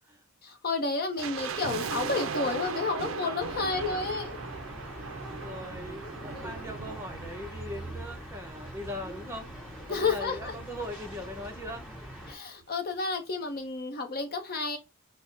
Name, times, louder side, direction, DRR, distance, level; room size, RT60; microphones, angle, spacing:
voice 1, 0.4-4.4 9.9-10.5 12.3-14.8, left 4 dB, 45° left, 0.6 m, -31 dB
sound 1, 1.2-8.4 8.7-8.8 9.5-11.3 11.5-11.6 11.9-12.2 12.6-12.7, right 5 dB, 65° right, 0.4 m, -38 dB
sound 2, 3.4-12.3, right 1 dB, 5° left, 1.5 m, -43 dB
voice 2, 3.5-4.1 5.2-9.5 9.9-11.8 12.2-12.4, left 1 dB, 10° right, 0.7 m, -40 dB
5.4 x 2.1 x 3.2 m
head